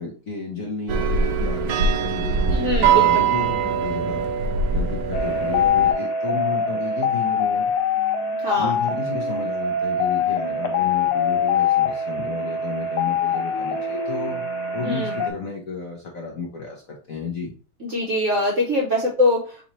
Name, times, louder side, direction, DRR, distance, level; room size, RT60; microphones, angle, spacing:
voice 1, 0.0-4.3 4.7-7.7 8.6-14.4 14.7-17.5, left 4 dB, 55° left, -1 dB, 1.0 m, -32 dB
sound 1, 0.9-5.9, right 6 dB, 90° right, 0.8 m, -22 dB
voice 2, 2.5-3.3 8.4-8.8 14.8-15.1 17.8-19.7, left 1 dB, 55° right, -3 dB, 0.9 m, -23 dB
sound 2, 5.1-15.3, left 5 dB, 80° left, 1.6 m, -23 dB
4.2 x 3.9 x 3.1 m, 0.37 s
omnidirectional pair, 2.4 m